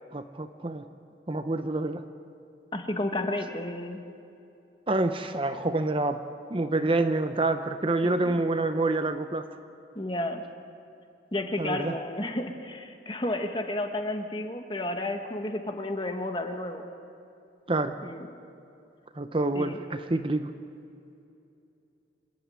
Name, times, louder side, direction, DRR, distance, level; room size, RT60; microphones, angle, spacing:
voice 1, 0.1-0.9 1.3-2.0 4.9-6.2 6.5-9.5 11.6-11.9 17.7-18.0 19.2-20.5, right 2 dB, 30° right, 8 dB, 0.7 m, -27 dB
voice 2, 2.7-4.0 8.0-8.4 9.9-10.4 11.3-16.9 18.0-18.3 19.5-19.8, left 1 dB, 30° left, 5 dB, 1.5 m, -32 dB
26.5 x 11.5 x 9.3 m, 2.6 s
head